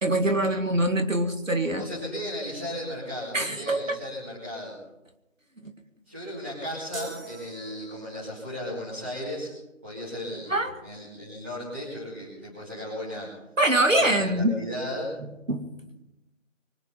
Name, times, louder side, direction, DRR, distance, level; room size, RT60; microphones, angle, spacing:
voice 1, 0.0-1.9 3.3-3.8 5.6-5.7 10.5-10.7 13.6-14.5 15.5-15.7, right 1 dB, 75° right, 6 dB, 2.4 m, -24 dB
voice 2, 1.8-4.8 6.1-9.5 9.8-10.5 10.8-13.3 13.9-15.1, left 1 dB, 10° right, -11 dB, 2.4 m, -35 dB
sound 1, 6.9-8.3, right 4 dB, 45° right, 2.3 m, -40 dB
24.5 x 9.4 x 5.6 m, 0.95 s
figure-of-eight pair, 175°, 39 cm